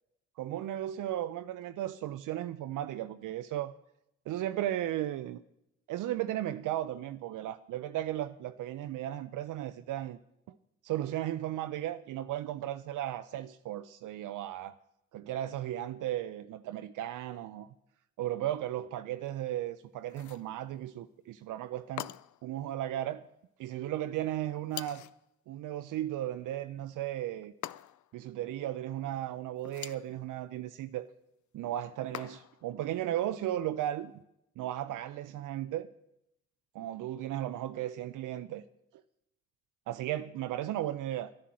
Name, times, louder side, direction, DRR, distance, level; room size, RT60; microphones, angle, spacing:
voice 1, 0.4-3.7 4.3-5.4 5.9-10.2 10.5-10.6 10.8-14.8 15.1-17.7 18.2-22.1 22.4-23.2 23.6-25.0 25.5-27.5 28.1-31.1 31.5-34.1 34.6-35.9 36.7-38.6 39.9-41.3, right 13 dB, 80° right, 0.6 m, -35 dB
sound 1, 20.1-20.5 22.0-22.5 24.7-25.2 27.6-28.2 29.6-30.1 32.1-32.7, left 13 dB, 70° left, 0.5 m, -43 dB
11.0 x 10.5 x 7.5 m
supercardioid pair, 50°, 31 cm